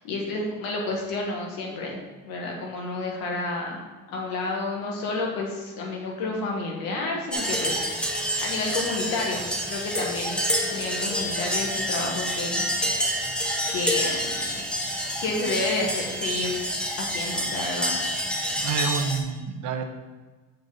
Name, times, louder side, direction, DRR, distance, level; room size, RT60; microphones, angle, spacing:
voice 1, 0.0-2.0 2.2-3.8 4.1-13.1 13.7-14.7 15.2-16.6 17.0-18.6, left 2 dB, 90° left, 0 dB, 1.7 m, -31 dB
sound 1, 7.3-19.2, equal, 5° left, 0.6 m, -28 dB
voice 2, 18.6-19.8, right 6 dB, 60° right, 5 dB, 0.9 m, -28 dB
7.0 x 5.2 x 3.9 m, 1.3 s
cardioid pair, 155°, 34 cm